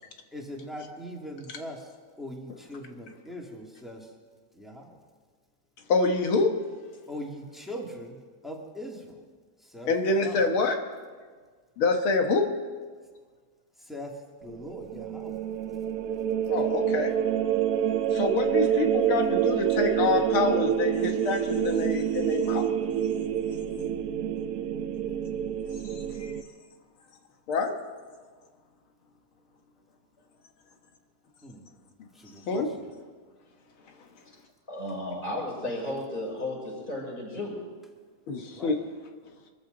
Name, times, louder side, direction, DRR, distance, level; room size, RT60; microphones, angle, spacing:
voice 1, 0.3-1.9 2.2-4.1 4.5-5.0 7.1-9.2 9.6-10.4 13.8-15.4 31.4-31.6 32.1-32.7 38.5-38.8, equal, ahead, -1 dB, 2.3 m, -41 dB
voice 2, 5.9-6.6 9.9-10.8 11.8-12.5 16.5-17.1 18.1-22.6 25.9-26.3 27.5-27.7 32.5-32.7 38.3-38.8, left 3 dB, 85° left, 4 dB, 2.3 m, -26 dB
sound 1, 14.5-26.4, right 9 dB, 65° right, 0.9 m, -27 dB
voice 3, 34.7-37.6, left 1 dB, 25° left, -5 dB, 5.6 m, -34 dB
24.5 x 14.5 x 4.0 m, 1.5 s
omnidirectional pair, 2.2 m